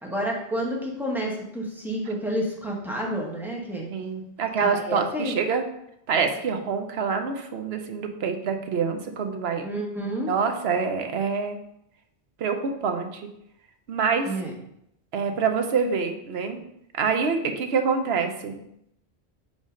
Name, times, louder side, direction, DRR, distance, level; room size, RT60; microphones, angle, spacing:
voice 1, 0.0-3.9 4.6-5.3 9.6-10.3 14.3-14.5, equal, ahead, -2 dB, 1.1 m, -30 dB
voice 2, 3.9-5.6 6.1-9.7 10.3-11.6 12.4-13.3 13.9-14.3 15.1-16.6 16.9-18.6, right 5 dB, 75° right, 6 dB, 1.0 m, -26 dB
5.2 x 3.8 x 5.1 m, 0.77 s
omnidirectional pair, 1.1 m